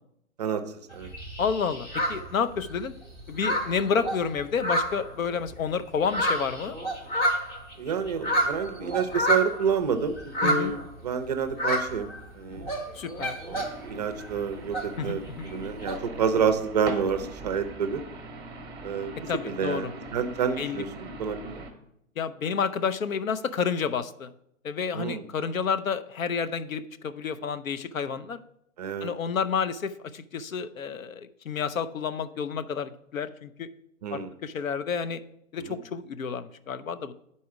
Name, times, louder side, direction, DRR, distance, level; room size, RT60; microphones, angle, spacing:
sound 1, 0.9-2.9 3.2-5.5 5.9-9.7 10.2-10.9 11.5-12.2 12.5-13.9 14.2-16.0, equal, 15° left, 0.8 m, -29 dB
voice 1, 1.4-2.9 3.3-6.8 10.4-10.7 12.9-13.4 15.0-15.5 19.3-19.9 20.6-20.8 22.2-24.3 24.6-28.4 29.0-33.7 34.1-35.2 35.5-37.1, left 6 dB, 80° left, 11 dB, 0.7 m, -30 dB
voice 2, 7.8-12.1 12.4-12.6 13.5-13.6 13.8-15.2 15.5-18.0 18.8-19.1 19.4-21.7 24.9-25.2 28.8-29.1 34.0-34.3 35.7-35.8, right 6 dB, 30° right, 9 dB, 0.5 m, -28 dB
sound 2, 13.6-21.7, right 2 dB, 10° right, 0.9 m, -41 dB
10.0 x 4.2 x 4.7 m, 0.77 s
figure-of-eight pair, 125°, 40 cm